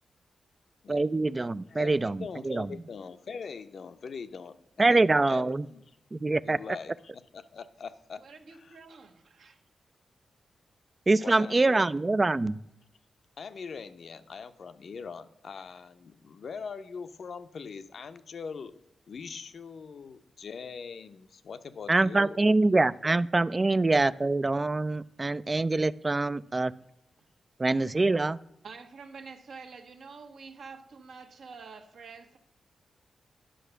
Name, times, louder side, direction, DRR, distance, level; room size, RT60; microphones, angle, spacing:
voice 1, 0.9-2.7 4.8-5.7 6.1-6.6 11.1-12.6 21.9-26.7 27.6-28.4, right 2 dB, 25° right, 19 dB, 0.3 m, -25 dB
voice 2, 1.7-4.6 4.9-5.0 5.3-5.8 6.4-6.9 7.3-8.2 11.2-11.8 13.4-18.7 19.1-22.5, left 5 dB, 55° left, 11 dB, 0.6 m, -42 dB
voice 3, 8.2-9.6 26.8-26.9 27.2-27.3 28.6-32.4, right 5 dB, 70° right, 5 dB, 1.1 m, -47 dB
10.0 x 6.0 x 6.7 m, 0.83 s
wide cardioid pair, 125°, 0 cm